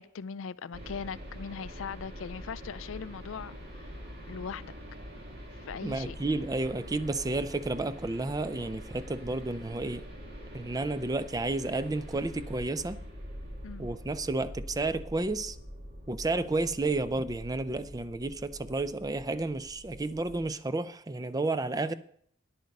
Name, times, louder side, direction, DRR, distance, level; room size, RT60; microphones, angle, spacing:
voice 1, 0.0-3.9 4.3-4.7 5.5-6.2 13.6-13.9, left 6 dB, 85° left, 0.4 m, -40 dB
sound 1, 0.7-20.6, equal, 55° right, 2.4 m, -45 dB
voice 2, 5.8-10.1 10.5-13.0 13.8-15.6 16.1-21.9, right 2 dB, 20° right, 0.5 m, -31 dB
10.5 x 8.6 x 5.3 m
head